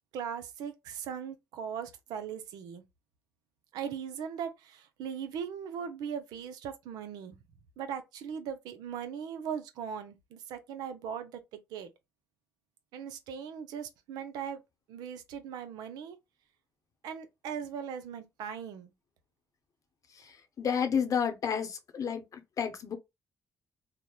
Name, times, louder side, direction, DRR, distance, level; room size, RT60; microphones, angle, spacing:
voice 1, 0.1-2.8 3.7-7.4 7.8-11.4 11.7-11.9 12.9-14.6 14.9-16.2 17.0-18.9, right 7 dB, 80° right, 0.4 m, -39 dB
voice 2, 20.6-23.0, left 7 dB, 55° left, 0.7 m, -30 dB
2.9 x 2.0 x 2.2 m
supercardioid pair, 55°, 7 cm